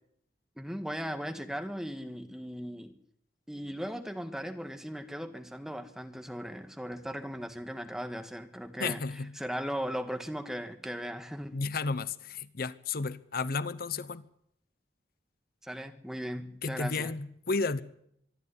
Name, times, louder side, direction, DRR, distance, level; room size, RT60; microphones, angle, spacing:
voice 1, 0.6-2.9 3.5-9.0 9.4-11.6 15.6-17.1, equal, 5° right, 1.6 m, -38 dB
voice 2, 8.8-9.3 11.5-14.2 16.6-17.8, left 4 dB, 55° left, 0.8 m, -32 dB
24.0 x 12.0 x 9.7 m
head